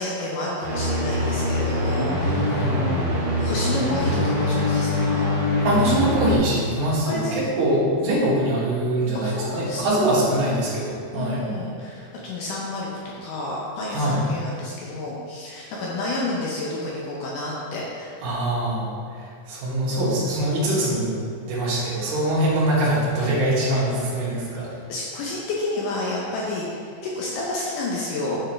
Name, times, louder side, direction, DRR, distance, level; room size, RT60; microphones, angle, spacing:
voice 1, 0.0-2.7 3.4-5.2 7.1-7.7 8.1-8.2 9.1-10.1 11.1-12.9 13.2-18.1 24.7-28.4, left 2 dB, 75° left, -4 dB, 2.1 m, -30 dB
sound 1, 0.6-6.4, left 1 dB, 55° right, 2.0 m, -23 dB
voice 2, 2.5-2.8 5.6-11.4 13.9-14.2 18.2-18.9 19.2-21.2 21.5-24.7, right 1 dB, 70° right, -7 dB, 3.1 m, -23 dB
8.7 x 4.5 x 3.3 m, 2.3 s
omnidirectional pair, 4.2 m